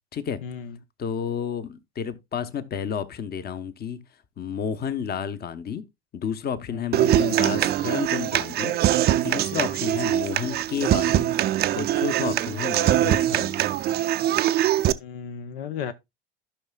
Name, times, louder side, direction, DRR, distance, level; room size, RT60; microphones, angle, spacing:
voice 1, 0.4-0.8 6.7-7.2 15.0-15.9, left 7 dB, 60° left, 0.7 m, -35 dB
voice 2, 1.0-4.0 4.4-5.8 6.1-8.7 9.2-11.4 11.7-13.7, left 7 dB, 30° left, 1.0 m, -31 dB
Human voice / Acoustic guitar, 6.9-14.9, right 12 dB, 30° right, 0.5 m, -23 dB
15.0 x 5.6 x 2.3 m
figure-of-eight pair, 75°, 33 cm